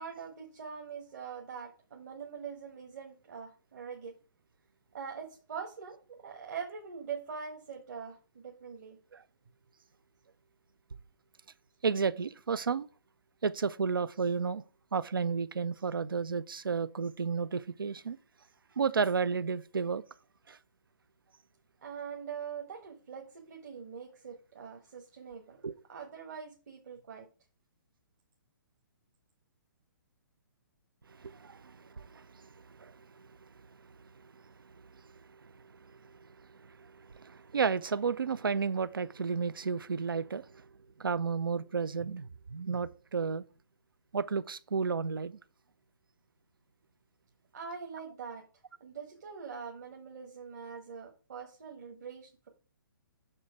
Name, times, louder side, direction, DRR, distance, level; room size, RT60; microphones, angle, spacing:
voice 1, 0.0-4.1 4.9-9.0 21.8-25.6 25.9-27.3 47.5-48.4 48.8-52.5, right 6 dB, 50° right, 1.2 m, -43 dB
voice 2, 11.8-12.9 13.4-14.6 14.9-18.2 18.8-20.0 20.5-20.6 25.6-25.7 31.1-33.3 34.2-34.3 34.6-40.7 41.0-43.5 44.1-45.4, right 5 dB, 70° right, 0.4 m, -33 dB
6.4 x 4.4 x 4.6 m
figure-of-eight pair, 130°, 12 cm